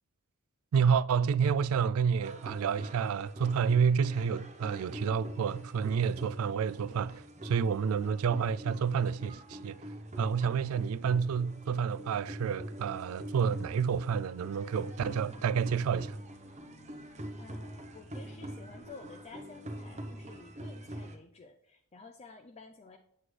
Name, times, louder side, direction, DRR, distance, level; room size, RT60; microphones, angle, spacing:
voice 1, 0.7-9.8 10.2-16.2, right 6 dB, 70° right, 0.3 m, -29 dB
sound 1, 2.2-21.2, right 1 dB, 30° right, 0.8 m, -44 dB
sound 2, 15.2-20.4, left 1 dB, 55° left, 1.0 m, -58 dB
voice 2, 17.4-23.0, left 4 dB, 30° left, 0.5 m, -52 dB
7.9 x 7.7 x 3.2 m
head